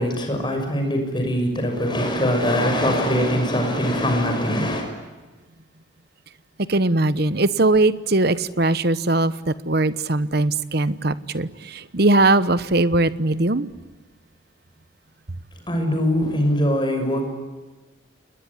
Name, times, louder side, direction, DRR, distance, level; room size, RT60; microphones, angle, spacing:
voice 1, 0.0-4.9 15.7-17.3, equal, 25° left, 4 dB, 6.3 m, -22 dB
voice 2, 6.7-9.3 9.7-13.7, right 2 dB, 50° right, 15 dB, 1.1 m, -20 dB
28.5 x 21.0 x 9.8 m, 1.3 s
head